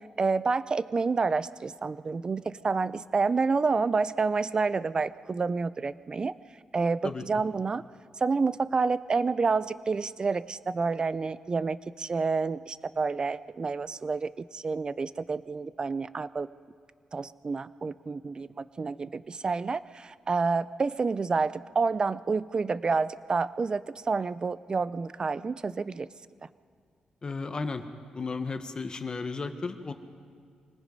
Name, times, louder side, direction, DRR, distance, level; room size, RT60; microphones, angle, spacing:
voice 1, 0.2-6.3 6.7-7.8 8.2-16.5 17.1-26.1, right 4 dB, 40° right, 17 dB, 0.5 m, -29 dB
voice 2, 27.2-27.8 28.1-29.9, left 4 dB, 40° left, 8 dB, 1.4 m, -34 dB
25.5 x 19.0 x 5.4 m, 2.1 s
cardioid pair, 75°, 2 cm